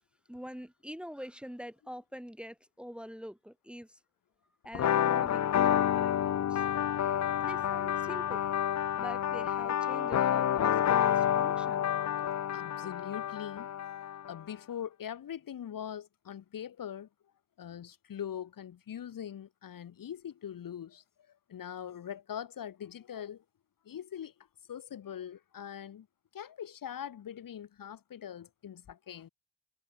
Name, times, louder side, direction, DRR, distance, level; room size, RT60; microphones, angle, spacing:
voice 1, 0.3-4.0 4.6-6.7 7.4-8.4 9.0-11.9 12.8-12.9, equal, 5° right, 2.5 m, -45 dB
sound 1, 4.7-14.3, left 10 dB, 50° left, 0.6 m, -29 dB
voice 2, 12.2-13.7 14.3-17.1 17.6-23.4 23.8-24.3 24.7-26.1 26.3-29.3, left 9 dB, 70° left, 1.4 m, -42 dB
cardioid pair, 80°, 34 cm